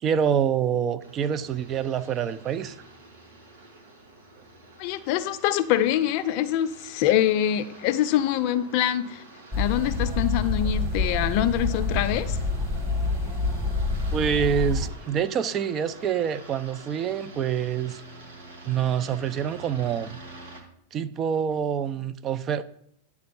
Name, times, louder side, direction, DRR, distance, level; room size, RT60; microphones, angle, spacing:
voice 1, 0.0-2.8 14.1-18.0 18.6-20.2 20.9-22.6, right 8 dB, 35° right, 13 dB, 0.5 m, -26 dB
sound 1, 1.0-20.6, right 2 dB, 75° right, 1.7 m, -47 dB
voice 2, 4.8-9.2 9.6-12.4, left 11 dB, 55° left, 11 dB, 0.5 m, -24 dB
sound 2, 9.5-14.9, left 3 dB, 15° right, 1.7 m, -27 dB
9.5 x 3.5 x 6.9 m, 0.69 s
hypercardioid pair, 100°, 0 cm